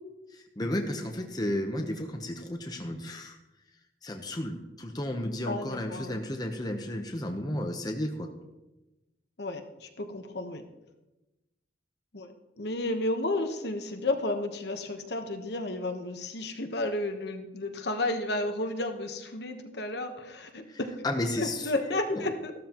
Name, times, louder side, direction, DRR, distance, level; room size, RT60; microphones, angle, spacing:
voice 1, 0.3-3.4 4.0-8.3 20.7-22.3, left 1 dB, 20° left, 3 dB, 0.9 m, -33 dB
voice 2, 5.5-6.2 9.4-10.6 12.1-21.0 21.4-22.5, left 2 dB, 60° left, 5 dB, 1.1 m, -32 dB
14.5 x 12.5 x 3.0 m, 1.0 s
head